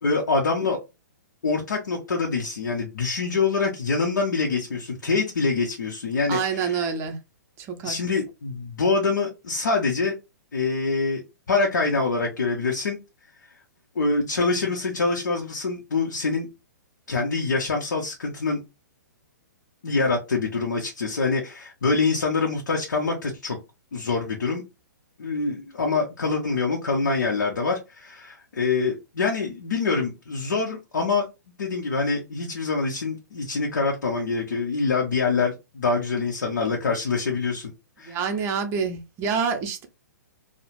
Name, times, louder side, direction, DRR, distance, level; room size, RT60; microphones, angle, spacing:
voice 1, 0.0-0.8 1.4-6.9 7.8-10.1 10.5-11.2 11.5-13.0 13.9-16.5 17.1-18.6 19.8-23.6 23.9-24.6 25.2-31.3 31.6-37.7 38.0-38.2, left 4 dB, 75° left, 0.6 m, -25 dB
voice 2, 6.3-7.2 7.6-8.1 38.0-39.8, right 6 dB, 25° right, 0.5 m, -27 dB
2.3 x 2.0 x 3.0 m
figure-of-eight pair, 120°, 10 cm